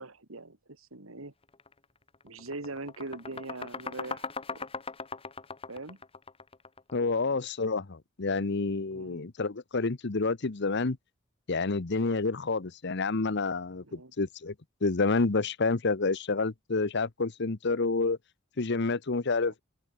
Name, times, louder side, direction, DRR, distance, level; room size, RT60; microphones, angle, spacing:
voice 1, 0.0-1.3 2.2-4.7 5.7-6.0 7.0-7.4 8.9-9.2 13.8-14.1, right 2 dB, 90° right, 2.5 m, -42 dB
sound 1, 1.5-1.7 2.1-7.0, left 4 dB, 30° left, 1.4 m, -39 dB
voice 2, 6.9-11.0 11.5-14.5 14.8-18.2 18.6-19.6, left 3 dB, 55° left, 1.0 m, -29 dB
open air
head